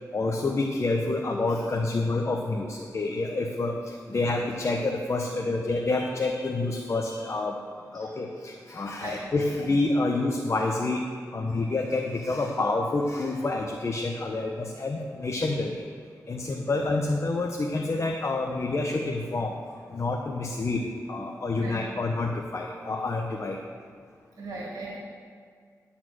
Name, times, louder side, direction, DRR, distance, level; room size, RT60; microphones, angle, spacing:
voice 1, 0.1-3.7 4.1-7.6 7.9-11.0 11.3-15.7 16.3-19.5 19.9-20.8 21.1-23.6, left 2 dB, 45° left, 1 dB, 0.8 m, -28 dB
voice 2, 24.4-25.0, right 3 dB, 75° right, -4 dB, 2.0 m, -38 dB
11.0 x 4.3 x 7.6 m, 2.1 s
cardioid pair, 65°, 6 cm